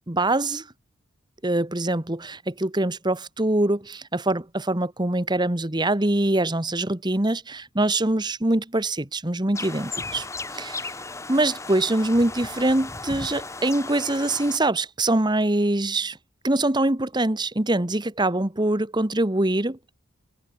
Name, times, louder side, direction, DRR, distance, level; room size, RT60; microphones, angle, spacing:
voice 1, 0.1-0.7 1.4-10.3 10.5-10.9 11.3-16.2 16.4-19.8, right 2 dB, 20° right, 1.2 m, -24 dB
sound 1, 9.5-14.6, left 3 dB, 15° left, 1.0 m, -36 dB
head